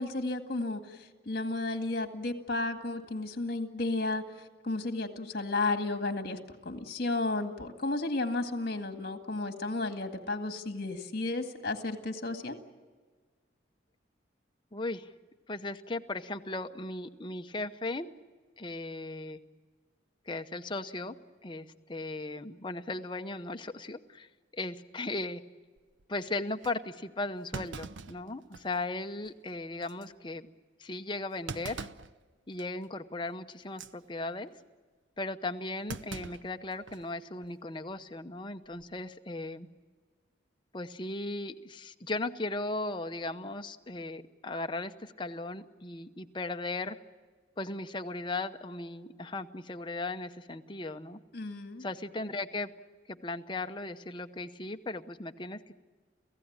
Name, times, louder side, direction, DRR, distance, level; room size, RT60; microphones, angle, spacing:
voice 1, 0.0-4.3 4.6-12.6 51.3-51.9, left 2 dB, 50° left, 6 dB, 2.0 m, -33 dB
voice 2, 14.7-15.1 15.5-18.1 18.6-19.4 20.3-21.2 21.4-25.4 26.1-30.5 30.8-31.9 32.5-34.5 35.2-39.7 40.7-47.0 47.6-51.2 51.8-52.7 53.1-55.7, left 2 dB, 25° left, 7 dB, 0.8 m, -37 dB
Thump thud, 25.8-26.0 26.6-26.7 27.5-28.9 29.2-29.3 29.8-30.0 31.5-32.1 32.6-32.8 33.6-33.9 35.9-37.1 37.4-37.5 38.6-39.0, right 4 dB, 75° right, 0.7 m, -42 dB
29.0 x 16.0 x 8.8 m, 1.5 s
head